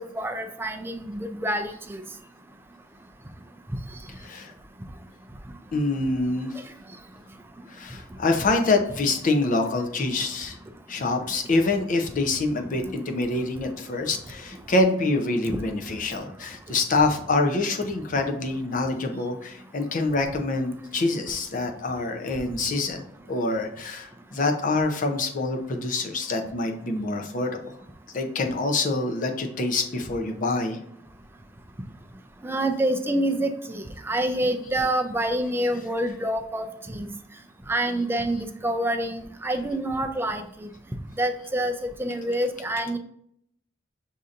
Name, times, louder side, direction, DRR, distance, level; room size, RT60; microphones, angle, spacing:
voice 1, 0.0-2.0 15.5-15.6 32.4-37.1 37.7-40.7 41.2-43.0, right 1 dB, 10° right, 6 dB, 0.4 m, -27 dB
voice 2, 5.7-6.5 7.7-10.6 10.9-27.7 28.1-30.8, left 2 dB, 45° left, 5 dB, 0.6 m, -26 dB
6.3 x 2.8 x 2.5 m, 0.70 s
head